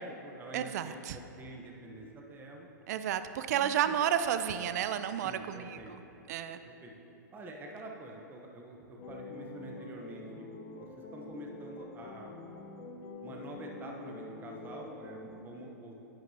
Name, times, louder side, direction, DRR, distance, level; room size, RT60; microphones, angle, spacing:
voice 1, 0.0-2.7 3.5-4.0 5.2-5.9 6.6-6.9 7.3-10.5 10.8-12.3 13.2-16.0, right 1 dB, 20° right, 0 dB, 0.9 m, -47 dB
voice 2, 0.5-1.2 2.9-6.0 6.3-6.6, right 9 dB, 55° right, 10 dB, 0.4 m, -31 dB
sound 1, 9.0-15.4, left 2 dB, 40° left, 0.9 m, -46 dB
11.0 x 8.8 x 2.8 m, 3.0 s
hypercardioid pair, 110°, 10 cm